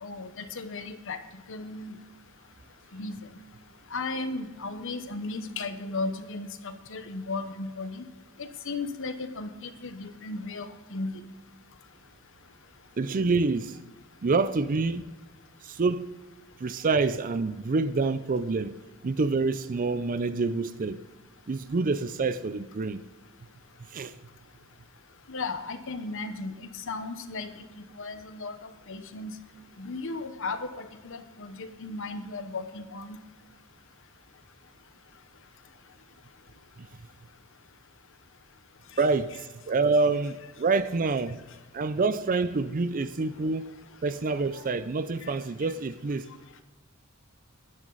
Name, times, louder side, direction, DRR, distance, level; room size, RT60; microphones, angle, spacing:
voice 1, 0.0-1.2 1.5-2.0 2.9-3.2 3.9-8.0 8.4-11.2 25.3-27.5 27.9-28.5 28.9-29.3 29.8-33.2 45.2-45.3, left 3 dB, 60° left, 1.0 m, -35 dB
voice 2, 13.0-13.8 14.2-15.0 15.6-16.1 16.6-18.8 19.0-21.0 21.5-23.0 23.9-24.1 36.8-36.9 39.0-41.4 41.7-43.7 44.0-46.3, right 3 dB, 40° right, 0.5 m, -27 dB
12.5 x 10.5 x 4.0 m
head